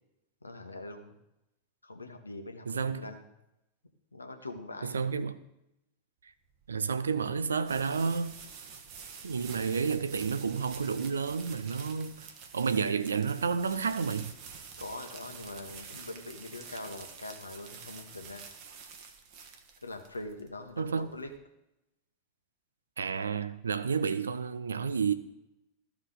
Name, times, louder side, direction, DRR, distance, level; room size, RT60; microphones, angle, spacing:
voice 1, 0.4-1.1 1.8-3.2 4.1-5.0 14.8-18.5 19.8-21.3, left 2 dB, 80° left, 1.0 m, -43 dB
voice 2, 2.7-3.0 4.8-5.4 6.7-8.3 9.2-12.1 12.5-14.3 20.8-21.1 23.0-25.1, right 5 dB, 70° right, 0.5 m, -30 dB
sound 1, 6.5-21.3, right 6 dB, 45° right, 1.2 m, -48 dB
14.0 x 4.7 x 3.9 m
figure-of-eight pair, 90°, 0 cm